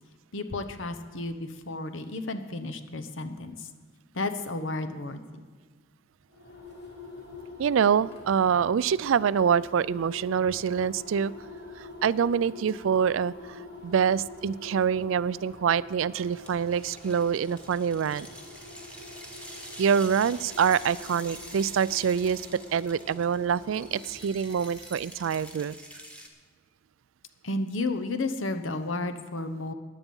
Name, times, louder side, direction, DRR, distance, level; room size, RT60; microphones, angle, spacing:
voice 1, 0.3-3.7 4.1-5.4 27.4-29.7, left 2 dB, 75° left, 8 dB, 1.0 m, -32 dB
sound 1, 6.3-25.3, left 2 dB, 55° left, 2.9 m, -46 dB
voice 2, 7.6-11.3 11.8-18.3 19.8-22.5 22.7-25.8, right 7 dB, 75° right, 19 dB, 0.3 m, -25 dB
sound 2, 16.2-26.3, equal, 5° left, 1.4 m, -46 dB
15.0 x 10.0 x 5.4 m, 1.6 s
head